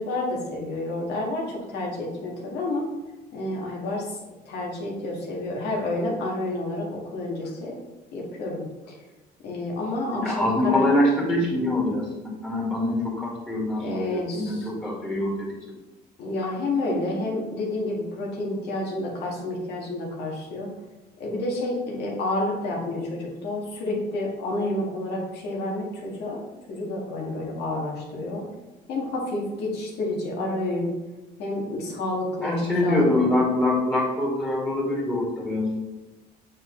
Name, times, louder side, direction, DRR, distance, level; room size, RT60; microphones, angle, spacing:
voice 1, 0.0-2.9 3.3-4.2 4.5-7.7 8.1-8.9 9.4-10.9 13.8-14.7 16.2-20.7 21.2-26.4 26.7-28.4 28.9-30.9 31.4-33.2, left 2 dB, 80° left, -3 dB, 1.8 m, -29 dB
voice 2, 10.1-15.5 32.4-35.7, left 1 dB, 5° left, -3 dB, 2.1 m, -24 dB
7.5 x 4.8 x 3.2 m, 1.1 s
cardioid pair, 110°, 17 cm